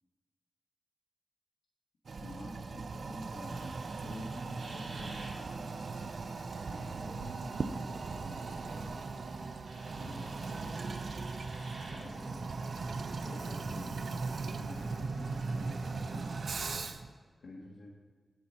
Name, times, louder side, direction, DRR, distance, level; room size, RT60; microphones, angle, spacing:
Toilet flush, 2.1-17.1, right 4 dB, 70° right, 0.4 m, -39 dB
voice 1, 2.2-5.8 6.7-8.5 10.0-10.7 11.9-12.4 13.2-14.0 14.6-16.3 17.4-17.9, left 1 dB, 75° left, -4 dB, 1.5 m, -48 dB
sound 1, 3.5-16.9, right 1 dB, 85° right, 2.0 m, -50 dB
9.7 x 4.2 x 7.6 m, 1.5 s
wide cardioid pair, 85°, 0 cm